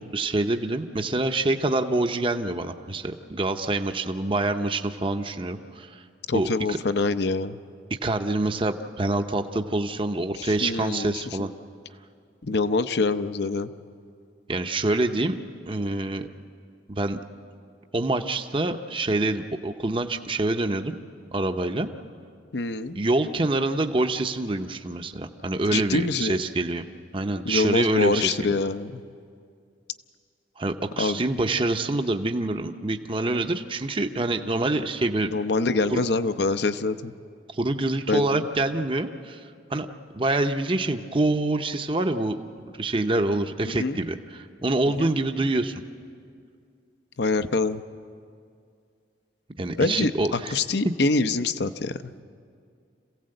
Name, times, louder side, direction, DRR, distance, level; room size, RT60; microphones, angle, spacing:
voice 1, 0.0-6.0 6.3-6.8 7.9-11.5 14.5-15.4 15.6-16.3 16.9-17.2 17.9-21.0 21.3-21.9 22.9-26.9 27.1-28.6 30.6-35.3 35.9-36.1 37.5-39.9 40.1-42.4 42.7-45.8 49.6-50.5, right 2 dB, 25° right, 7 dB, 0.7 m, -26 dB
voice 2, 6.3-7.6 10.4-11.5 12.4-13.7 22.5-23.0 25.7-26.4 27.4-29.0 31.0-31.2 35.2-37.1 38.1-38.4 43.7-44.0 45.0-45.1 47.2-47.8 49.8-52.1, left 3 dB, 60° left, 11 dB, 0.7 m, -25 dB
26.5 x 16.5 x 7.8 m, 2.3 s
head